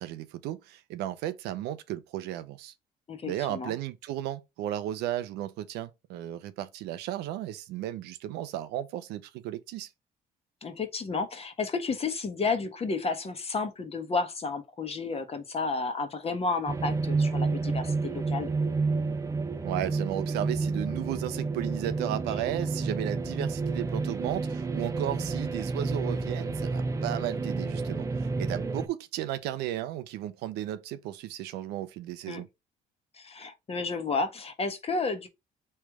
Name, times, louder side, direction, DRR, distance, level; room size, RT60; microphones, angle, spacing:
voice 1, 0.0-2.7 3.2-9.9 19.6-32.5, right 13 dB, 85° right, 0.6 m, -34 dB
voice 2, 3.1-3.8 10.6-18.5 32.3-32.4 33.1-35.3, left 4 dB, 35° left, 1.1 m, -31 dB
sound 1, 16.7-28.9, right 3 dB, 20° right, 0.6 m, -30 dB
3.2 x 3.2 x 4.7 m
cardioid pair, 85°, 17 cm